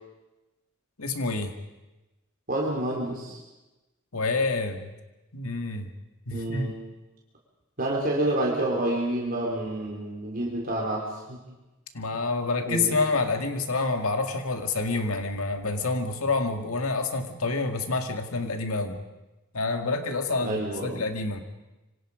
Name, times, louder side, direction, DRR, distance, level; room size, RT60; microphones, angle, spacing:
voice 1, 1.0-1.5 4.1-4.9 5.3-5.9 6.3-6.7 11.9-19.0 19.5-21.4, left 3 dB, 80° left, 6 dB, 2.2 m, -28 dB
voice 2, 2.5-3.4 6.3-6.8 7.8-11.4 12.7-12.9 20.4-21.0, right 1 dB, 40° right, -3 dB, 4.0 m, -28 dB
26.5 x 25.0 x 5.1 m, 1.1 s
head